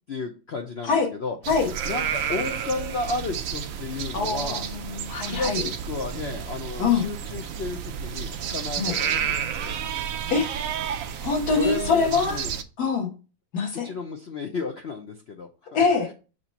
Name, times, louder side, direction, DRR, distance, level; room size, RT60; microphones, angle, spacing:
voice 1, 0.1-1.4 1.8-4.7 5.3-9.4 9.6-9.7 11.5-12.5 13.8-15.8, left 4 dB, 85° left, 3 dB, 0.5 m, -33 dB
sound 1, 1.4-12.6, right 8 dB, 85° right, 0.7 m, -31 dB
voice 2, 4.1-5.7 6.8-7.0 8.8-8.9 10.3-10.5 11.2-12.4 12.8-13.1 13.5-13.9 15.7-16.1, left 5 dB, 55° left, 2 dB, 1.8 m, -24 dB
6.5 x 3.0 x 5.6 m, 0.33 s
omnidirectional pair, 2.1 m